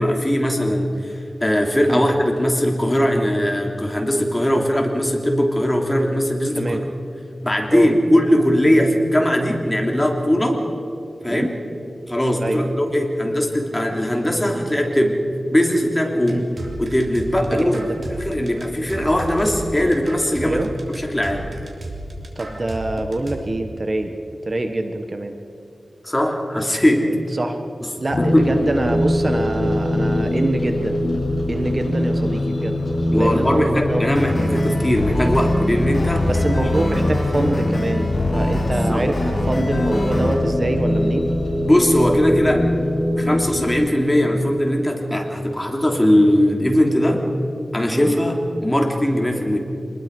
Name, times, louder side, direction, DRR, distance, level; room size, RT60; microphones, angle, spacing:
voice 1, 0.0-6.8 7.4-10.6 11.2-11.5 12.1-15.2 15.5-16.4 16.8-17.7 18.1-20.6 21.0-21.4 26.0-27.1 28.2-28.5 33.1-36.3 38.8-39.1 41.6-42.7 43.2-47.2 47.7-49.6, equal, 15° left, 1 dB, 3.1 m, -19 dB
sound 1, 16.3-23.4, right 2 dB, 70° right, 3.3 m, -33 dB
voice 2, 17.5-18.0 20.4-20.7 22.3-24.1 24.4-25.4 27.3-27.6 28.0-31.0 31.5-32.8 33.1-34.1 36.3-41.3 47.9-48.1, right 2 dB, 40° right, 6 dB, 1.4 m, -25 dB
sound 2, 28.1-43.7, left 1 dB, 70° left, 7.3 m, -23 dB
sound 3, 34.1-40.3, left 1 dB, 35° left, 6.5 m, -25 dB
26.5 x 20.5 x 5.4 m, 2.6 s
wide cardioid pair, 75°, 0 cm